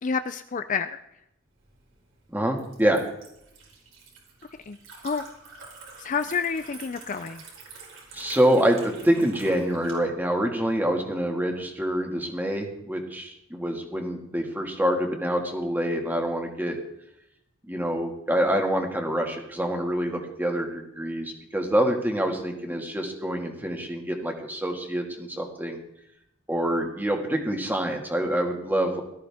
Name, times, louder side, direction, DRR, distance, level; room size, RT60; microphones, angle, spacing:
voice 1, 0.0-1.0 4.7-4.8 5.0-5.2 6.0-7.4, left 5 dB, 40° left, 10 dB, 0.5 m, -29 dB
Liquid, 1.6-9.9, right 4 dB, 80° right, 4.9 m, -47 dB
voice 2, 2.3-3.0 8.1-16.8 17.7-25.8 26.5-29.0, right 1 dB, 10° right, 2 dB, 2.0 m, -26 dB
18.5 x 13.5 x 3.6 m, 0.80 s
head